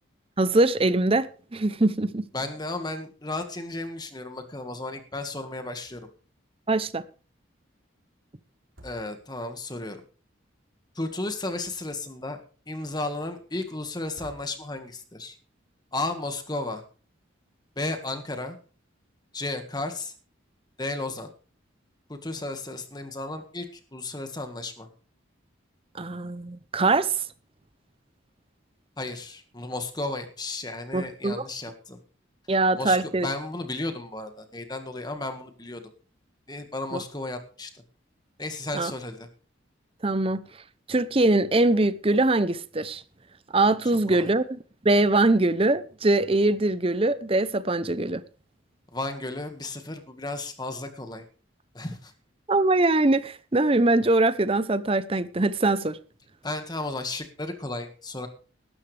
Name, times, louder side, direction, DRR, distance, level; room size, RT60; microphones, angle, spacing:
voice 1, 0.4-2.2 6.7-7.0 26.0-27.2 30.9-31.4 32.5-33.3 36.9-37.0 38.7-38.9 40.0-40.4 40.9-43.0 43.5-44.4 44.8-48.2 52.5-56.0, right 2 dB, 25° right, 0.7 m, -22 dB
voice 2, 2.3-6.1 8.8-10.0 10.9-12.4 12.7-15.3 15.9-16.8 17.7-18.6 19.3-20.1 20.8-21.3 22.1-23.7 23.9-24.9 29.0-32.0 32.7-35.8 36.5-37.7 38.4-39.3 44.1-44.3 48.9-51.2 51.7-52.1 56.4-58.3, left 2 dB, 20° left, 1.7 m, -33 dB
sound 1, 5.8-6.3 6.6-6.7 8.5-9.6 11.3-12.2 14.0-15.0, equal, 75° right, 4.6 m, -53 dB
17.0 x 13.0 x 3.4 m
head